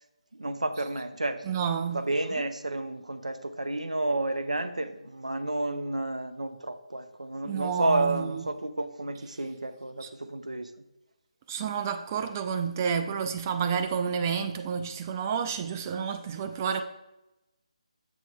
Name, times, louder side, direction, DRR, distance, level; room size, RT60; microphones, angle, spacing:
voice 1, 0.3-1.4 1.9-10.7, right 2 dB, 90° right, 0.5 m, -31 dB
voice 2, 1.5-2.0 7.4-8.4 10.0-10.1 11.5-16.8, right 7 dB, 25° right, 0.4 m, -30 dB
7.0 x 3.1 x 4.6 m
figure-of-eight pair, 155°, 4 cm